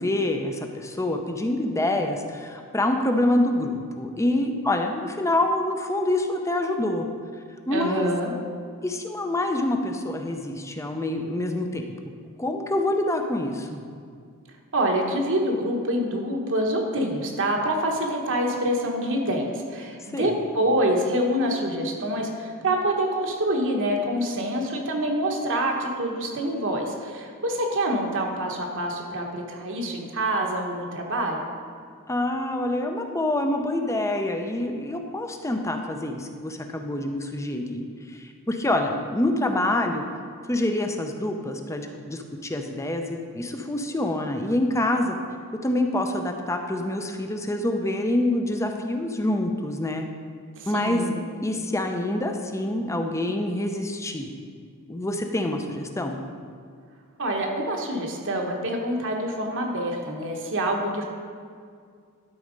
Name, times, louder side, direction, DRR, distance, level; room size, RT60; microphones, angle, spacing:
voice 1, 0.0-7.1 7.7-8.1 8.8-11.8 12.4-13.8 20.1-20.4 32.1-40.0 40.5-45.2 45.6-50.0 50.7-51.0 51.4-54.3 54.9-56.2, left 1 dB, 15° left, 4 dB, 0.6 m, -26 dB
voice 2, 7.7-8.3 14.7-31.5 50.6-51.2 57.2-61.0, right 1 dB, 60° right, 1 dB, 1.2 m, -26 dB
12.0 x 4.2 x 5.2 m, 2.2 s
head